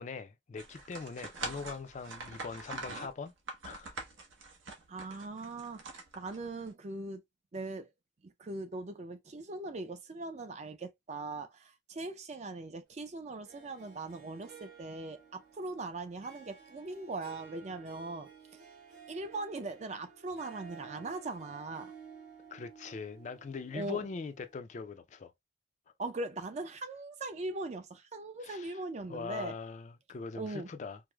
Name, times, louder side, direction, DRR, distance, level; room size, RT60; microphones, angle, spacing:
voice 1, 0.0-3.3 3.6-4.0 22.5-25.3 28.4-28.8 29.1-31.0, left 5 dB, 40° left, 0.3 m, -41 dB
sound 1, 0.6-6.7, right 3 dB, 85° right, 0.9 m, -44 dB
voice 2, 4.9-7.2 7.5-7.9 8.2-18.3 19.1-21.9 23.7-24.0 26.0-29.5 30.3-30.7, right 2 dB, 35° right, 0.4 m, -40 dB
Harp, 13.4-24.6, right 6 dB, 70° right, 2.1 m, -54 dB
4.6 x 2.0 x 2.2 m
head